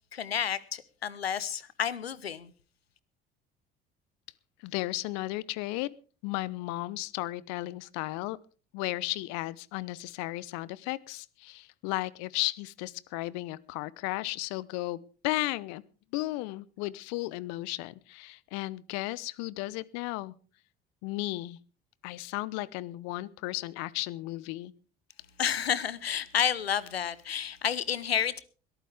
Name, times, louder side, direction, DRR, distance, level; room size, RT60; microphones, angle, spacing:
voice 1, 0.1-2.5 25.4-28.4, left 8 dB, 90° left, 0.9 m, -30 dB
voice 2, 4.6-5.9 6.2-8.4 8.7-15.8 16.1-20.3 21.0-21.6 22.0-24.7, left 19 dB, 60° left, 0.9 m, -34 dB
21.5 x 13.5 x 3.5 m
figure-of-eight pair, 60°, 30 cm